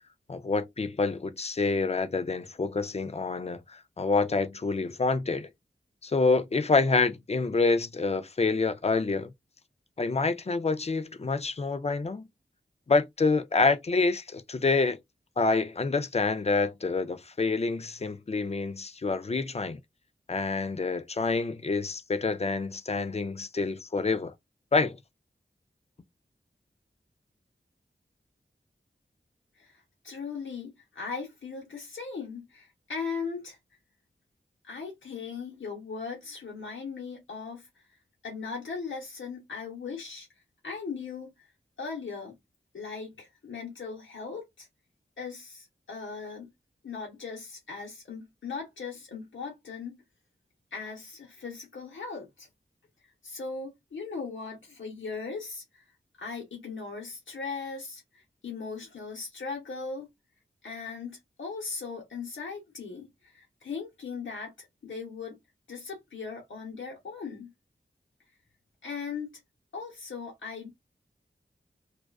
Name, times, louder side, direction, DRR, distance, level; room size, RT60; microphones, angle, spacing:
voice 1, 0.3-5.5 6.0-9.3 10.0-12.3 12.9-15.0 15.4-19.8 20.3-24.3 24.7-25.0, left 3 dB, 35° left, 0.4 m, -27 dB
voice 2, 29.5-33.6 34.6-40.3 40.6-41.3 41.8-42.3 42.7-44.7 45.2-46.5 46.8-50.0 50.7-52.5 53.2-55.8 56.2-60.1 60.6-65.4 65.7-67.5 68.8-69.4 69.7-70.7, left 5 dB, 80° left, 0.8 m, -38 dB
2.3 x 2.3 x 2.2 m
wide cardioid pair, 65°, 20 cm